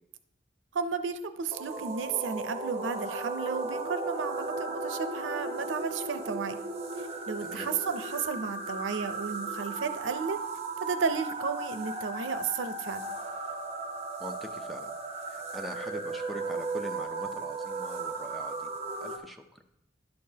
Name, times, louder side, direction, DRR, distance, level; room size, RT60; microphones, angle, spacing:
voice 1, 0.7-6.6 7.0-10.4 10.8-13.1, right 5 dB, 85° right, 11 dB, 0.5 m, -33 dB
sound 1, 1.5-19.2, right 3 dB, 35° right, 0.9 m, -36 dB
voice 2, 7.4-7.7 14.2-14.9 15.3-18.7 19.0-19.4, equal, ahead, 5 dB, 0.5 m, -42 dB
11.0 x 6.6 x 2.8 m, 0.84 s
head